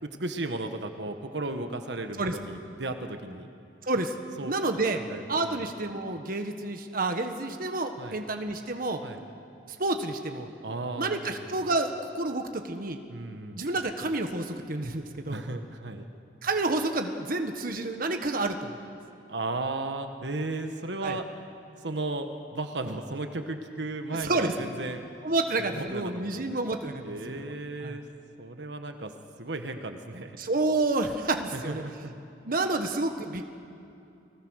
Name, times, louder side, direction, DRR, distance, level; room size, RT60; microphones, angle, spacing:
voice 1, 0.0-3.5 4.4-4.5 5.1-5.7 8.0-8.2 9.0-9.2 10.6-11.7 13.1-13.6 15.3-16.1 19.3-21.2 21.8-25.0 25.6-26.5 27.0-28.0 28.4-29.1 29.4-30.4 31.3-32.2, right 2 dB, 70° right, 6 dB, 1.5 m, -35 dB
voice 2, 3.8-4.1 4.5-5.0 5.3-9.0 9.7-10.5 11.0-13.0 13.5-15.4 16.4-18.8 21.0-21.2 24.2-24.5 25.2-27.5 27.8-28.0 30.4-31.8 32.4-33.5, right 2 dB, 55° right, 6 dB, 1.5 m, -29 dB
29.5 x 20.5 x 6.5 m, 2.7 s
head